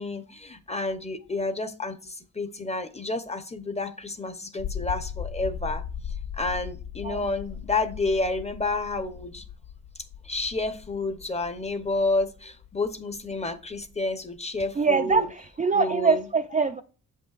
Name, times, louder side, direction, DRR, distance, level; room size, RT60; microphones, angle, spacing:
voice 1, 0.0-5.8 6.4-9.4 10.2-15.3 15.7-16.2, left 2 dB, 20° left, 0.7 m, -30 dB
sound 1, 4.6-14.7, left 7 dB, 65° left, 0.5 m, -38 dB
voice 2, 14.8-16.8, right 4 dB, 25° right, 0.4 m, -23 dB
7.1 x 5.5 x 2.4 m
cardioid pair, 70°, 33 cm